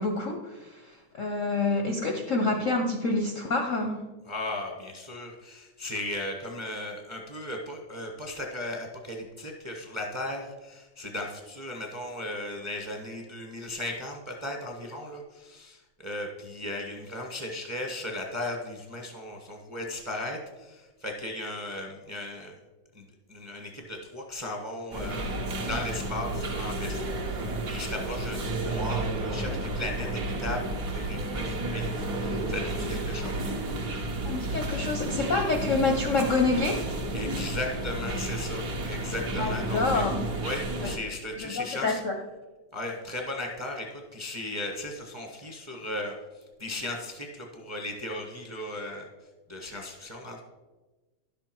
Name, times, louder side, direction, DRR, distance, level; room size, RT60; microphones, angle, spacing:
voice 1, 0.0-4.1 34.2-36.9 39.4-40.1 40.8-40.9 41.4-42.1, left 3 dB, 60° left, 3 dB, 0.8 m, -27 dB
voice 2, 4.2-22.5 22.9-25.4 25.7-33.6 37.1-40.1 40.4-42.0 42.7-49.1 49.5-50.4, left 1 dB, 20° right, 1 dB, 0.8 m, -36 dB
sound 1, 24.9-41.0, right 1 dB, 50° right, 1.5 m, -32 dB
11.0 x 6.9 x 4.5 m, 1.2 s
omnidirectional pair, 2.3 m